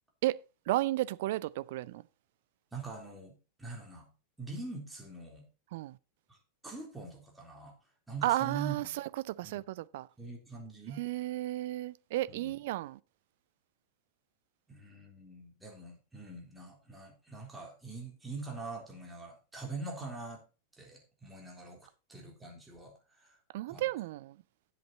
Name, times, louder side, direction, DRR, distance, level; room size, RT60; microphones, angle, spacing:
voice 1, 0.7-2.0 5.7-6.0 8.2-10.1 11.0-13.0 23.5-24.4, right 16 dB, 55° right, 0.5 m, -33 dB
voice 2, 2.7-4.1 4.4-5.4 6.3-6.4 6.6-7.8 8.1-9.0 9.4-9.6 10.2-11.0 12.3-12.6 14.7-20.4 20.8-23.4 23.7-23.9, right 3 dB, 10° right, 3.7 m, -44 dB
10.5 x 7.8 x 4.2 m
figure-of-eight pair, 90°, 0 cm